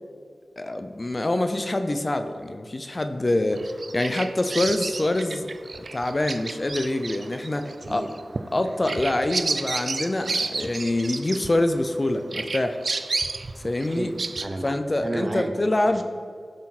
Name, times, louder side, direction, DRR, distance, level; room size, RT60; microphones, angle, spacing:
voice 1, 0.6-5.5 5.9-8.0 8.5-12.8 13.6-14.1 14.6-16.0, left 1 dB, 35° left, 8 dB, 0.7 m, -25 dB
Bird vocalization bird call bird song, 3.6-12.0 12.3-14.5, right 3 dB, 65° right, 0.5 m, -31 dB
voice 2, 7.5-8.1 8.9-9.1 13.8-14.7 15.0-15.5, right 2 dB, 35° right, 5 dB, 1.0 m, -33 dB
15.0 x 6.4 x 4.3 m, 2.2 s
wide cardioid pair, 75°, 0 cm